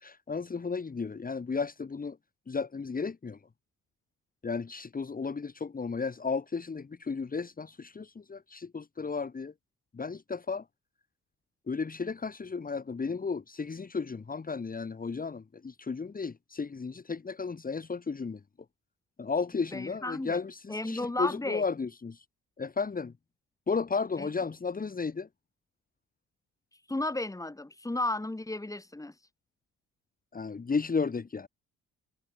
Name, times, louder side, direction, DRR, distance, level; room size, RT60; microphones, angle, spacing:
voice 1, 0.0-2.2 2.5-3.4 4.4-9.5 9.9-10.6 11.7-18.4 19.2-22.2 22.6-23.1 23.7-25.3 30.3-31.5, left 5 dB, 30° left, 2.3 m, -34 dB
voice 2, 19.7-20.4 20.7-21.6 24.2-24.3 26.9-29.1, left 2 dB, 10° left, 3.1 m, -33 dB
cardioid pair, 90°, 30 cm